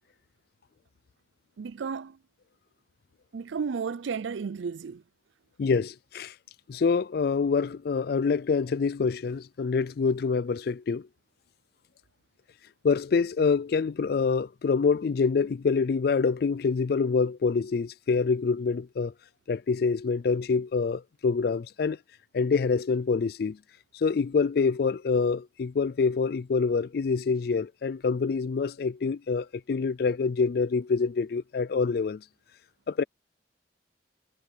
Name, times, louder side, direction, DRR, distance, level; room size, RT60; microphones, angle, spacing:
voice 1, 1.6-2.2 3.3-5.0, right 5 dB, 85° right, 0.4 m, -33 dB
voice 2, 5.6-6.3 6.7-11.1 12.8-19.1 19.5-22.0 22.3-23.6 23.9-32.2 32.9-33.0, left 5 dB, 55° left, 0.3 m, -26 dB
head